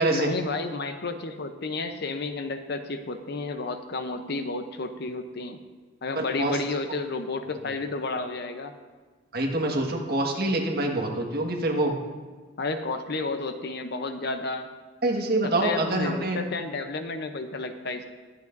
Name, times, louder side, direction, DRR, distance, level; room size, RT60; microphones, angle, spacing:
voice 1, 0.1-5.6 6.0-8.7 12.6-14.7 15.4-18.1, left 3 dB, 55° left, 7 dB, 0.7 m, -31 dB
voice 2, 6.1-6.6 9.3-11.9 15.0-16.4, right 2 dB, 50° right, 1 dB, 1.6 m, -25 dB
21.5 x 8.0 x 2.6 m, 1.4 s
head